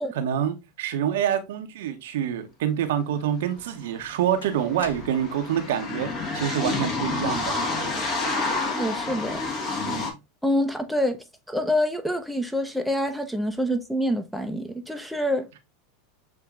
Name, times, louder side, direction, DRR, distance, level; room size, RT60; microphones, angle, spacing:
voice 1, 0.1-6.1 6.3-7.6 9.8-10.1, right 9 dB, 70° right, 0.8 m, -26 dB
sound 1, 3.4-3.5 4.4-5.5, left 4 dB, 85° left, 0.6 m, -41 dB
sound 2, 3.6-3.7 3.9-10.1, left 3 dB, 35° left, 1.4 m, -29 dB
voice 2, 8.7-9.4 10.4-11.2 11.5-15.6, equal, ahead, 0.7 m, -26 dB
7.2 x 2.8 x 2.4 m
hypercardioid pair, 95°, 0 cm